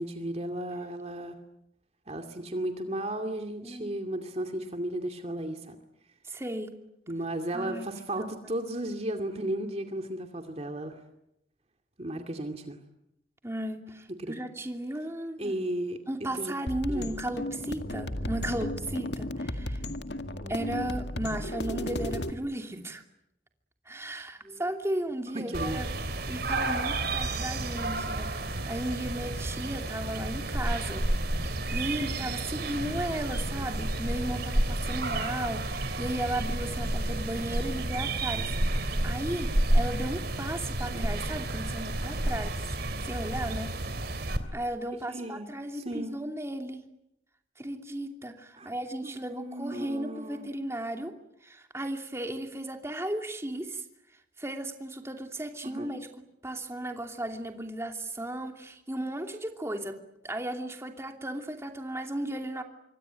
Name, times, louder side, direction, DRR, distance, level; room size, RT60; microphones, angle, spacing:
voice 1, 0.0-1.4 2.1-5.8 7.1-11.0 12.0-12.8 14.1-14.4 15.4-16.0 16.4-16.5 16.9-17.0 20.3-20.5 25.3-25.8 40.9-41.1 45.1-45.5 45.7-46.1 48.6-48.7 49.0-50.5 55.6-55.9, right 1 dB, 35° right, 6 dB, 2.4 m, -34 dB
voice 2, 3.6-4.0 6.2-6.7 7.5-7.9 8.2-8.4 13.4-15.6 16.1-19.8 20.5-23.0 23.9-25.9 26.3-31.1 31.4-42.7 43.0-43.7 44.5-46.8 47.6-51.1 51.4-53.8 54.4-56.1 56.4-60.0 60.2-62.6, right 1 dB, 15° right, 4 dB, 2.7 m, -35 dB
sound 1, 16.7-22.3, left 1 dB, 65° left, 2.0 m, -34 dB
sound 2, 25.5-44.4, right 1 dB, 55° right, 3.2 m, -30 dB
26.5 x 24.5 x 9.2 m, 0.82 s
head